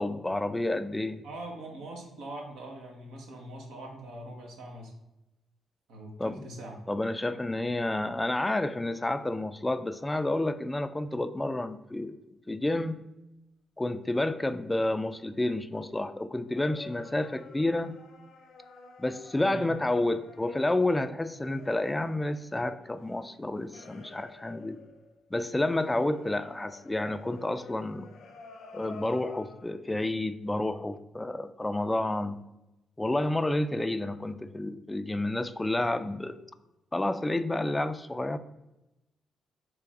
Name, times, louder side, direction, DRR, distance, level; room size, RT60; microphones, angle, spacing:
voice 1, 0.0-1.2 6.2-6.4 6.9-12.2 12.5-13.0 13.8-17.9 19.0-24.8 25.3-28.1 28.7-32.4 33.0-36.4 36.9-38.4, left 2 dB, 15° left, 11 dB, 0.3 m, -30 dB
voice 2, 1.2-4.9 5.9-6.8 19.4-19.7, right 1 dB, 80° right, 1 dB, 1.0 m, -42 dB
sound 1, 16.5-25.3 25.8-29.8, left 4 dB, 70° left, 0.7 m, -50 dB
3.4 x 3.1 x 4.7 m, 0.94 s
supercardioid pair, 65°, 0 cm